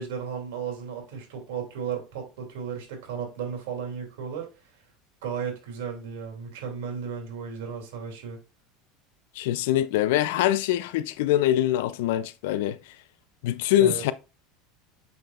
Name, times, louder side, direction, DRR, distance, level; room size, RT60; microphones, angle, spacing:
voice 1, 0.0-4.5 5.2-8.4 13.8-14.0, right 7 dB, 85° right, 2.8 m, -34 dB
voice 2, 9.4-12.8 13.4-14.1, left 13 dB, 80° left, 0.5 m, -23 dB
7.0 x 5.7 x 2.4 m
supercardioid pair, 145°, 0 cm